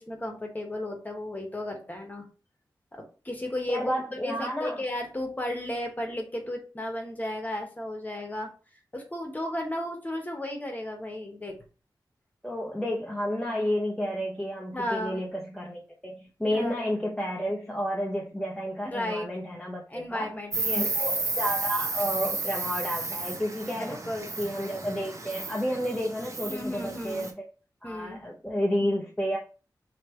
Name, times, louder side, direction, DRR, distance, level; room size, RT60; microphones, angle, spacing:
voice 1, 0.0-2.3 2.9-8.5 8.9-11.6 14.7-15.2 16.4-16.7 18.8-19.3 19.9-20.9 23.9-24.3 26.5-27.3 27.8-28.2, left 1 dB, 20° left, 2 dB, 1.1 m, -34 dB
voice 2, 3.7-4.8 12.4-20.3 20.7-24.0 24.4-27.4 27.8-29.4, equal, 5° left, -3 dB, 0.7 m, -31 dB
Insect, 20.5-27.3, right 3 dB, 45° right, 0.8 m, -32 dB
3.3 x 2.9 x 4.3 m, 0.36 s
wide cardioid pair, 100°, 7 cm